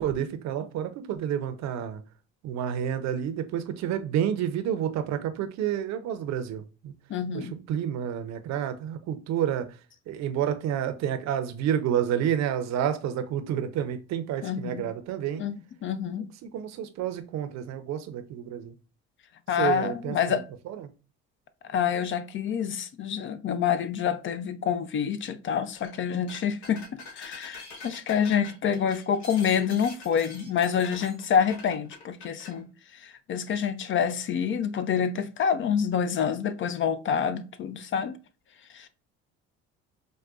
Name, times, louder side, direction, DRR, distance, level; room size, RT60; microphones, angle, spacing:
voice 1, 0.0-2.0 2.4-6.9 7.3-9.7 10.1-15.5 16.2-18.7 19.6-20.4 20.7-20.9, right 9 dB, 60° right, 0.6 m, -29 dB
voice 2, 7.1-7.5 14.4-14.8 15.4-16.3 19.5-20.4 21.7-26.9 27.1-38.1 38.7-38.9, left 7 dB, 40° left, 0.4 m, -27 dB
sound 1, 25.8-26.0 26.3-32.6, left 3 dB, 65° left, 1.1 m, -45 dB
4.7 x 2.2 x 2.3 m
supercardioid pair, 85°, 31 cm